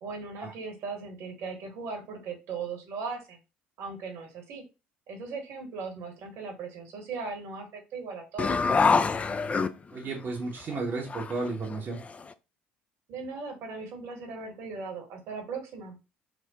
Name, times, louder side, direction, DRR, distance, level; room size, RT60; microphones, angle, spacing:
voice 1, 0.0-3.4 3.8-4.6 5.1-8.7 13.1-16.0, right 4 dB, 55° right, 3 dB, 1.1 m, -38 dB
sound 1, 8.4-10.2 10.7-10.8 11.1-12.3, left 4 dB, 25° left, 0.3 m, -26 dB
voice 2, 9.9-12.0, right 3 dB, 40° right, -1 dB, 0.8 m, -33 dB
4.4 x 2.1 x 2.8 m, 0.28 s
figure-of-eight pair, 55°, 5 cm